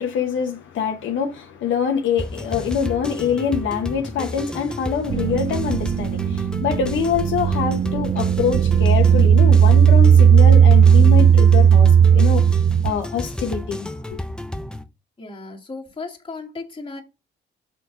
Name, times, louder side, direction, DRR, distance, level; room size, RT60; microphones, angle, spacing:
voice 1, 0.0-12.4 12.8-14.2, left 7 dB, 75° left, 1.2 m, -24 dB
sound 1, 2.2-14.9, left 1 dB, 5° left, 0.7 m, -32 dB
sound 2, 5.1-12.9, right 8 dB, 50° right, 0.4 m, -15 dB
voice 2, 15.2-17.0, left 3 dB, 25° left, 2.0 m, -35 dB
6.2 x 4.5 x 3.9 m
cardioid pair, 90°, 20 cm